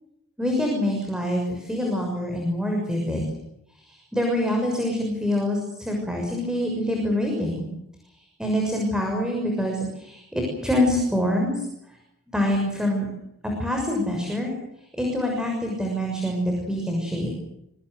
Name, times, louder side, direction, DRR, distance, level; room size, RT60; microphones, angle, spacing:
voice 1, 0.4-3.3 3.9-7.7 8.4-11.5 12.3-13.1 13.6-14.5 15.0-17.3, left 1 dB, 5° right, 1 dB, 6.6 m, -25 dB
26.0 x 24.5 x 6.6 m, 0.81 s
head